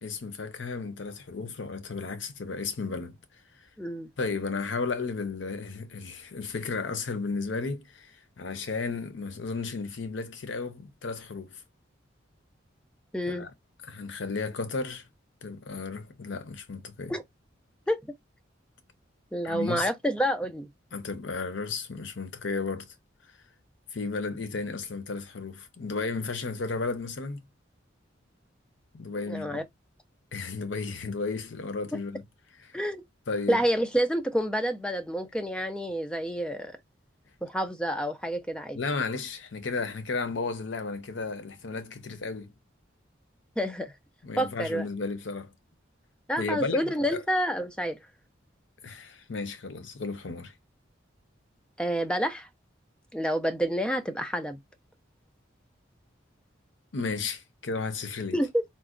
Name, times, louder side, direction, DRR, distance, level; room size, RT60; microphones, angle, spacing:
voice 1, 0.0-3.2 3.6-3.7 4.2-11.6 13.3-13.5 13.9-15.1 15.4-17.2 19.4-19.9 20.9-22.9 23.9-27.4 28.9-29.6 30.3-32.2 32.6-32.7 33.3-33.6 38.7-42.5 44.2-45.5 46.4-47.2 48.8-50.5 56.9-58.4, left 4 dB, 75° left, 0.6 m, -34 dB
voice 2, 3.8-4.1 13.1-13.5 17.1-17.2 17.9-18.0 19.3-20.7 29.3-29.6 32.7-33.0 33.5-36.8 37.4-38.8 43.6-43.9 44.4-44.8 46.3-48.0 51.8-52.5 53.1-54.6 58.3-58.6, equal, 5° left, 0.4 m, -28 dB
3.8 x 2.1 x 2.4 m
head